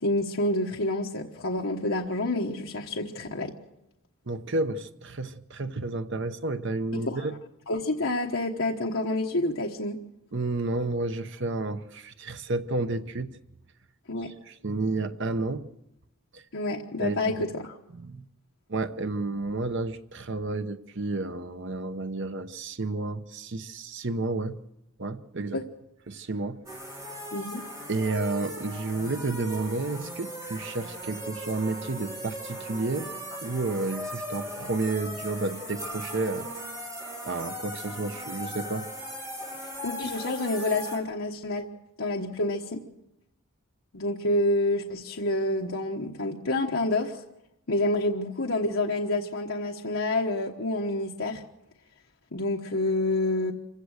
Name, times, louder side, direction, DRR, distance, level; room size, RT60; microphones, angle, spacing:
voice 1, 0.0-3.5 6.9-7.3 7.7-10.0 14.1-14.3 16.5-17.7 25.5-25.6 27.3-27.6 33.3-33.4 39.8-41.6 42.0-42.8 43.9-47.2 47.7-51.4 52.3-53.5, left 2 dB, 65° left, 0 dB, 1.3 m, -28 dB
voice 2, 4.3-7.3 10.3-13.4 14.5-15.6 16.3-16.4 17.0-17.5 18.0-18.3 18.7-24.6 25.0-25.6 26.1-26.6 26.9-27.0 27.9-33.1 33.4-36.5 37.2-38.9, right 2 dB, 55° right, 10 dB, 0.9 m, -31 dB
sound 1, 26.7-41.0, equal, 15° right, 4.1 m, -38 dB
26.0 x 16.5 x 6.5 m, 0.88 s
head